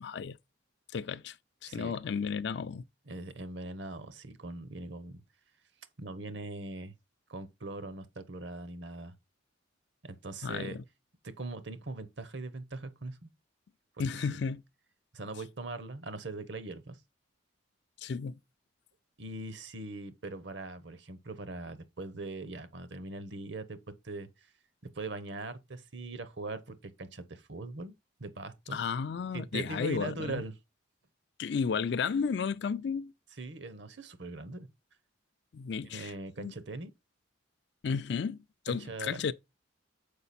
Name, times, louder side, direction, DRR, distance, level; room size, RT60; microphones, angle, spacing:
voice 1, 0.0-0.4 0.9-1.4 1.6-2.8 10.4-10.8 14.0-14.6 18.0-18.4 28.7-30.4 31.4-33.1 35.5-36.1 36.4-36.5 37.8-39.3, left 5 dB, 55° left, 0.4 m, -33 dB
voice 2, 3.1-5.2 6.0-6.9 7.3-9.1 10.0-10.8 11.2-13.3 14.2-14.3 15.1-17.0 19.2-23.8 24.0-24.5 24.9-27.9 28.2-28.8 29.3-30.5 33.4-34.7 35.8-36.9 38.7-39.2, right 2 dB, 60° right, 0.9 m, -41 dB
6.8 x 4.9 x 4.2 m
head